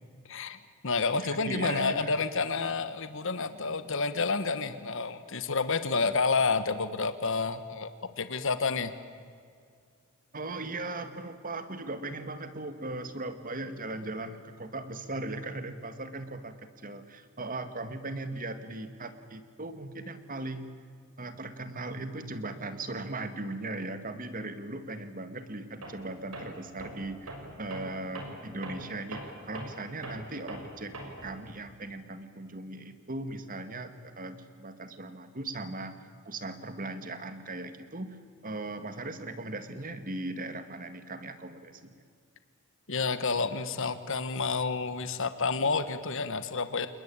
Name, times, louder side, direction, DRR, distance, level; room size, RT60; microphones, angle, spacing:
voice 1, 0.3-0.6 0.8-7.9 8.2-8.9 42.9-46.9, left 4 dB, 60° left, 11 dB, 1.4 m, -29 dB
voice 2, 1.2-2.2 10.3-16.6 16.8-20.7 21.2-31.0 31.2-38.2 38.4-41.9, right 2 dB, 40° right, 9 dB, 2.0 m, -38 dB
Tools, 25.8-26.1 26.3-31.4, right 1 dB, 80° right, 6.1 m, -42 dB
29.0 x 20.5 x 8.9 m, 2.2 s
head